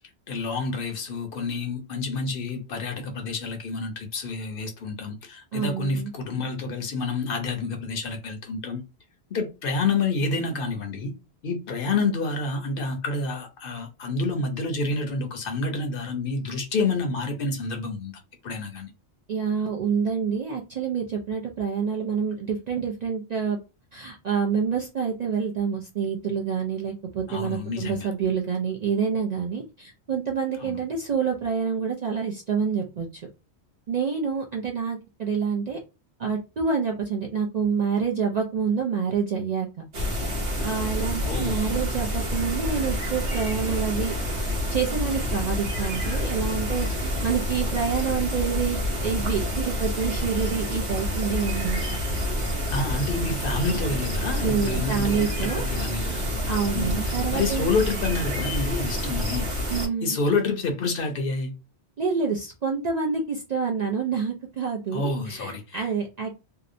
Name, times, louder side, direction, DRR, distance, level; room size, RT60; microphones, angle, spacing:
voice 1, 0.3-8.8 9.3-11.1 11.4-18.9 27.3-28.1 30.6-30.8 41.2-41.6 52.7-56.2 56.7-59.5 60.0-61.5 64.9-65.9, left 3 dB, 60° left, 0.7 m, -28 dB
voice 2, 5.5-6.1 19.3-23.6 23.9-33.2 33.9-35.8 36.2-39.7 40.6-51.8 54.4-55.6 56.5-57.7 59.7-60.2 62.0-66.3, right 6 dB, 55° right, 0.4 m, -27 dB
sound 1, 39.9-59.9, left 1 dB, 85° right, 1.1 m, -28 dB
2.7 x 2.1 x 2.5 m
omnidirectional pair, 1.1 m